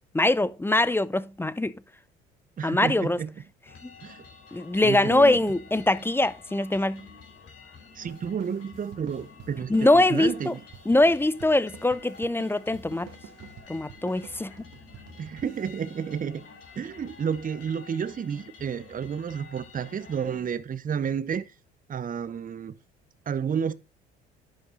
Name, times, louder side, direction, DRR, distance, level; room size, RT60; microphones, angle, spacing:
voice 1, 0.1-1.7 2.6-3.2 4.5-7.0 9.7-10.5 10.9-13.1 13.7-14.6, left 2 dB, 10° left, 0.5 m, -23 dB
voice 2, 2.6-3.3 4.0-4.3 4.8-5.5 8.0-10.6 15.2-16.4 16.8-21.4 21.9-22.8 23.3-23.7, right 7 dB, 30° right, 0.8 m, -31 dB
sound 1, 3.6-20.4, left 5 dB, 50° left, 3.6 m, -50 dB
sound 2, 8.1-16.9, right 10 dB, 55° right, 1.7 m, -50 dB
11.0 x 5.1 x 3.8 m
figure-of-eight pair, 55°, 30 cm